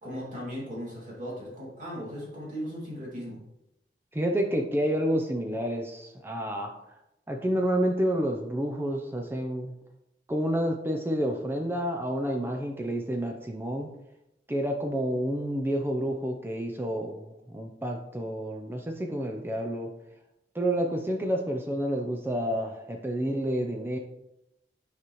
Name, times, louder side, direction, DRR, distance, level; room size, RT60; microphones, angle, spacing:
voice 1, 0.0-3.4, equal, 45° right, -6 dB, 2.6 m, -37 dB
voice 2, 4.1-6.7 7.3-9.7 10.3-13.9 14.5-19.9 20.5-24.0, equal, 10° right, 2 dB, 0.5 m, -29 dB
8.5 x 4.9 x 3.1 m, 0.86 s
head